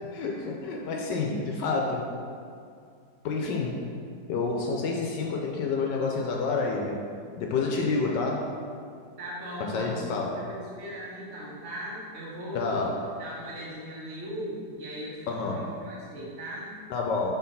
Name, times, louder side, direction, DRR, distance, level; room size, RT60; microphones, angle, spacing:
voice 1, 0.1-2.1 3.2-3.8 4.3-7.0 7.4-8.5 9.6-10.4 12.5-13.0 15.3-15.8 16.9-17.3, left 4 dB, 75° left, 0 dB, 1.2 m, -29 dB
voice 2, 9.2-16.8, equal, 40° right, -7 dB, 1.3 m, -38 dB
4.6 x 3.9 x 5.3 m, 2.3 s
omnidirectional pair, 2.0 m